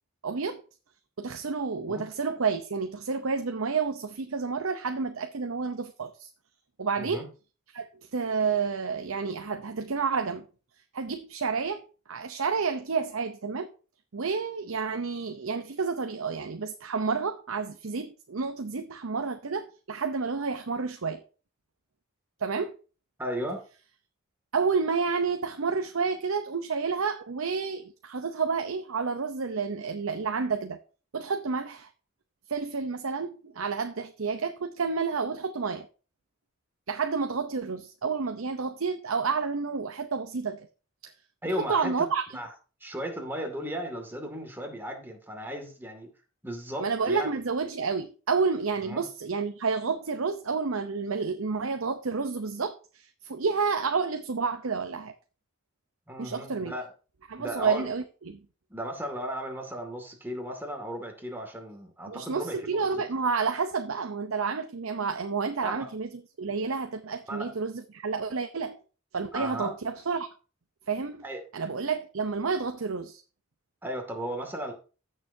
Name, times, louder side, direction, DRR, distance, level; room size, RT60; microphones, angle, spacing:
voice 1, 0.2-0.6 1.2-6.3 6.8-7.3 7.7-10.5 10.9-11.8 12.1-13.7 14.1-21.2 22.4-22.7 24.5-30.8 31.1-31.9 32.5-35.9 36.9-40.7 41.0-41.1 41.5-42.4 46.8-55.1 56.2-56.7 57.3-58.4 62.1-68.8 69.1-70.3 70.9-71.2 71.5-73.2, right 5 dB, 80° right, 0.7 m, -30 dB
voice 2, 23.2-23.7 41.4-42.1 42.3-42.5 42.8-46.1 46.4-47.3 48.8-49.1 56.1-56.9 57.4-57.9 58.7-62.6 62.9-63.0 65.6-65.9 67.3-67.5 69.3-69.7 71.2-71.4 73.8-74.7, equal, 10° right, 2.2 m, -35 dB
15.5 x 6.8 x 2.7 m
head